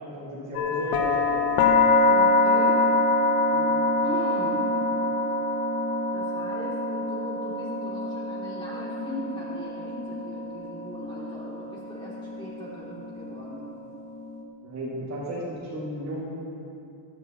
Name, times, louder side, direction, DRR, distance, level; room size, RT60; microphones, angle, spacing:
voice 1, 0.0-1.9 14.6-16.2, equal, 35° right, -7 dB, 2.5 m, -34 dB
sound 1, 0.5-14.4, left 2 dB, 85° left, 1.1 m, -25 dB
voice 2, 2.0-2.9 3.5-4.7 6.1-13.7, equal, 10° left, -9 dB, 3.0 m, -39 dB
14.5 x 13.5 x 3.1 m, 2.7 s
cardioid pair, 175°, 50 cm